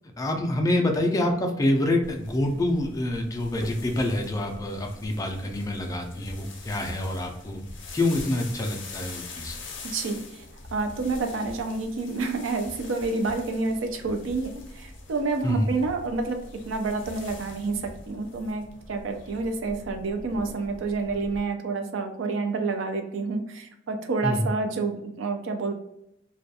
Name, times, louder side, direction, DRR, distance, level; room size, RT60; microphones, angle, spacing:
voice 1, 0.2-7.6 7.9-9.6 15.4-15.7 24.2-24.5, left 1 dB, 20° left, 2 dB, 0.3 m, -26 dB
sound 1, 2.0-21.4, left 2 dB, 70° left, 0.5 m, -43 dB
voice 2, 9.8-10.4 10.7-16.4 16.6-18.6 18.9-25.7, right 3 dB, 85° right, 6 dB, 0.4 m, -29 dB
2.3 x 2.2 x 2.7 m, 0.81 s
head